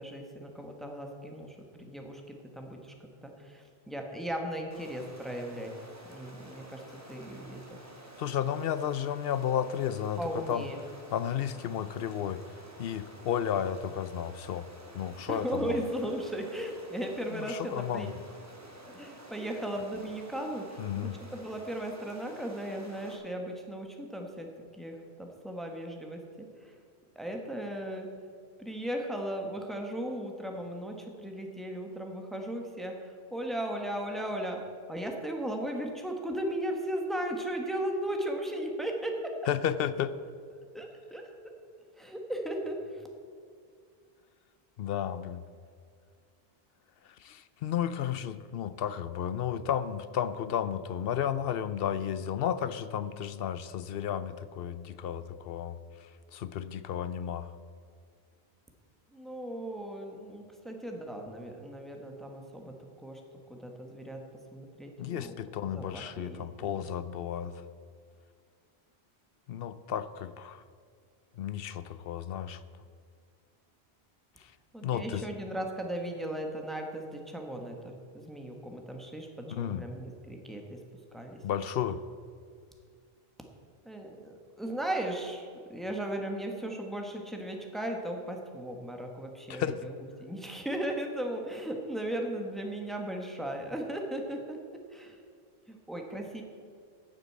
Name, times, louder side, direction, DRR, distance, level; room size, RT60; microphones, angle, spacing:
voice 1, 0.0-5.7 6.1-6.8 7.1-7.8 10.2-10.8 15.3-18.1 18.9-24.5 24.7-26.8 27.1-28.1 28.6-34.6 34.9-39.1 40.7-41.2 42.0-43.0 59.1-63.2 63.5-64.2 64.5-66.8 74.7-80.8 81.1-81.4 83.8-95.2 95.7-96.4, right 1 dB, ahead, 2 dB, 1.3 m, -37 dB
Stream, 4.7-23.2, right 1 dB, 15° right, 1.6 m, -51 dB
voice 2, 8.2-10.7 11.1-12.4 12.8-14.7 14.9-15.9 17.3-18.1 20.8-21.2 39.5-40.1 44.8-45.4 47.0-57.5 65.0-67.6 69.5-70.6 71.4-72.6 74.4-74.5 74.8-75.2 79.5-79.9 81.4-82.0 89.5-89.8, left 9 dB, 70° left, 14 dB, 0.8 m, -33 dB
9.1 x 7.7 x 8.5 m, 2.2 s
omnidirectional pair, 1.1 m